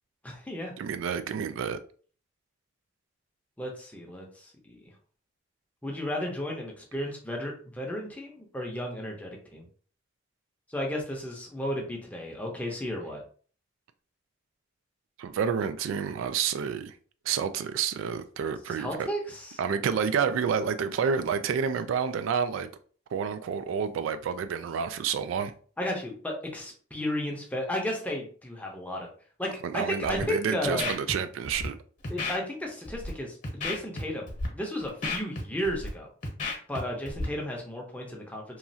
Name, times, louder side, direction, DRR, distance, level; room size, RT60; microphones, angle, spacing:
voice 1, 0.2-0.7 3.6-4.8 5.8-9.6 10.7-13.2 18.8-19.6 25.8-29.1 29.4-30.9 32.1-36.1 36.7-38.6, equal, 10° left, 0.6 m, -34 dB
voice 2, 0.8-1.8 15.2-17.0 17.3-19.1 19.6-22.7 23.1-25.5 29.6-31.8, right 6 dB, 85° right, 0.3 m, -29 dB
Scratching (performance technique), 30.0-30.2 30.6-31.1 31.4-31.7 32.0-32.3 32.8-33.1 33.4-34.0 34.3-34.5 34.8-35.9 36.2-36.8 37.1-37.2, left 3 dB, 40° left, 0.9 m, -32 dB
3.0 x 2.3 x 2.6 m
head